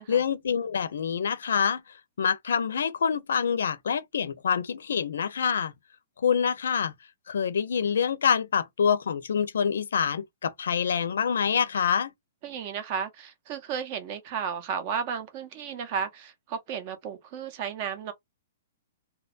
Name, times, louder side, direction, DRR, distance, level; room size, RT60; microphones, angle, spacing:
voice 1, 0.1-1.8 2.2-5.7 6.2-6.9 7.3-12.1, left 7 dB, 80° left, 0.5 m, -26 dB
voice 2, 12.4-18.1, right 7 dB, 30° right, 0.5 m, -33 dB
2.8 x 2.2 x 2.4 m
hypercardioid pair, 175°, 0 cm